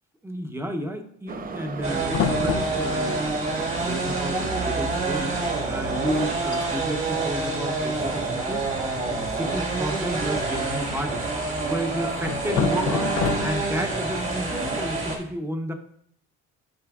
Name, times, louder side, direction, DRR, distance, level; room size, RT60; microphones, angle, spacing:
voice 1, 0.2-3.3 3.6-8.7 9.1-11.3 11.6-13.1 13.4-15.7, equal, 10° right, 5 dB, 0.9 m, -31 dB
Subway metro underground, 1.3-6.8, right 4 dB, 30° right, 0.5 m, -36 dB
sound 1, 1.8-15.2, right 3 dB, 45° right, 1.8 m, -27 dB
sound 2, 2.1-3.3 4.1-4.2 4.4-4.8 5.1-5.3 5.8-5.9 6.3-6.7 7.7-8.3 10.3-11.2 12.2-13.9, left 8 dB, 85° left, 0.6 m, -30 dB
10.5 x 4.4 x 2.4 m, 0.65 s
cardioid pair, 90°, 30 cm